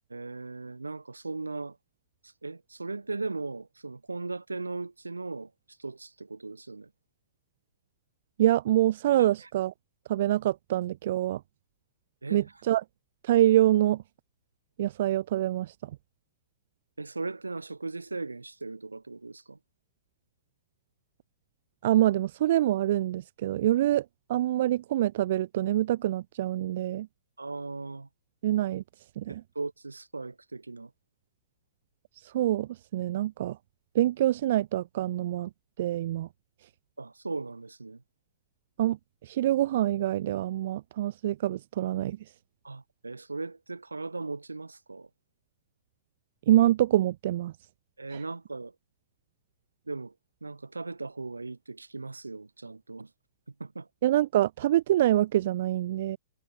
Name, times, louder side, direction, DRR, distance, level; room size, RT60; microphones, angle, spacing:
voice 1, 0.1-1.8 2.2-6.9 9.2-9.5 12.2-12.4 17.0-19.6 27.4-28.1 29.3-30.9 37.0-38.0 42.6-45.1 48.0-48.7 49.9-50.1 50.4-53.1 53.6-53.9, right 3 dB, 90° right, 2.7 m, -38 dB
voice 2, 8.4-9.7 10.1-11.4 12.3-12.8 13.2-14.0 14.8-15.9 21.8-27.1 28.4-28.8 29.2-29.4 32.2-33.6 33.9-35.5 35.8-36.3 38.8-39.0 39.2-42.2 46.5-47.5 48.1-48.2 54.0-56.2, right 13 dB, 55° right, 0.6 m, -25 dB
figure-of-eight pair, 110°, 0 cm